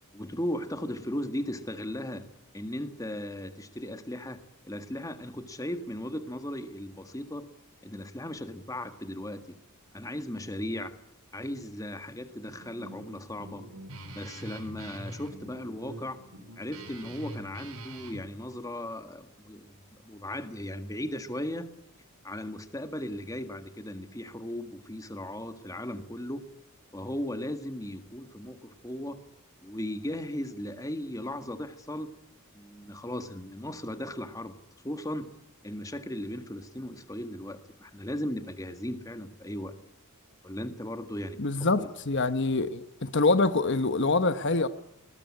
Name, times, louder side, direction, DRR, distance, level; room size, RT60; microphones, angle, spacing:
voice 1, 0.1-2.3 2.5-7.5 7.8-9.6 9.9-11.0 11.3-13.7 14.1-16.2 16.6-19.7 20.0-21.7 22.2-26.5 26.9-29.2 29.6-32.1 32.5-34.6 34.8-35.3 35.6-39.8 40.4-41.9, left 1 dB, 15° left, 8 dB, 1.8 m, -37 dB
Guitar, 12.5-18.2, right 1 dB, 80° right, 4.6 m, -44 dB
voice 2, 41.4-44.7, left 3 dB, 55° left, 11 dB, 1.1 m, -25 dB
21.0 x 21.0 x 9.8 m, 0.80 s
head